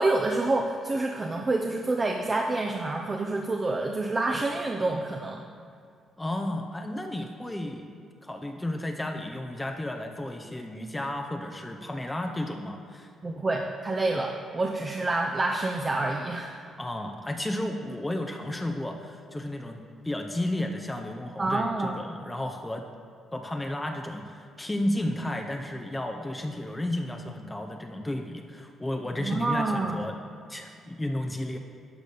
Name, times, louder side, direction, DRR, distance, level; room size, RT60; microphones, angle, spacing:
voice 1, 0.0-5.4 13.2-16.5 21.4-22.0 29.2-30.0, right 2 dB, 30° right, 1 dB, 0.7 m, -27 dB
voice 2, 6.2-13.1 16.7-22.9 23.3-30.2 30.5-31.6, left 1 dB, 15° left, 4 dB, 0.7 m, -33 dB
12.0 x 4.0 x 6.6 m, 2.3 s
cardioid pair, 90°, 0 cm